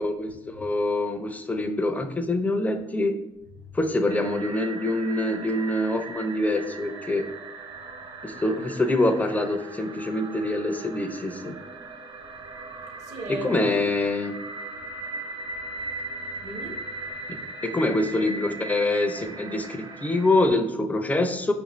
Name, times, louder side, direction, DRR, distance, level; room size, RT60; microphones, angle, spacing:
voice 1, 0.0-3.2 3.7-7.3 8.2-11.6 13.3-14.4 17.3-21.5, left 2 dB, 15° left, 6 dB, 0.4 m, -25 dB
sound 1, 4.1-20.5, right 3 dB, 40° right, 0.5 m, -39 dB
voice 2, 13.0-13.6 15.9-16.0 16.4-17.4, right 1 dB, 65° right, 2 dB, 0.8 m, -39 dB
4.8 x 2.5 x 3.0 m, 0.92 s
cardioid pair, 110°, 12 cm